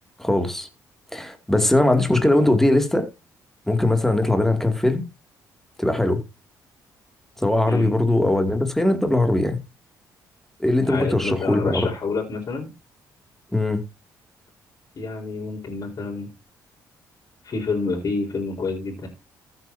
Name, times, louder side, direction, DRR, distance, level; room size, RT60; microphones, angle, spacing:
voice 1, 0.2-0.7 1.1-3.1 3.7-5.1 5.8-6.2 7.4-9.6 10.6-11.9 13.5-13.8, left 1 dB, 5° left, 2.5 m, -20 dB
voice 2, 10.9-12.7 15.0-16.3 17.4-19.1, left 3 dB, 50° left, 4.4 m, -28 dB
15.0 x 7.9 x 2.8 m
supercardioid pair, 70°, 8 cm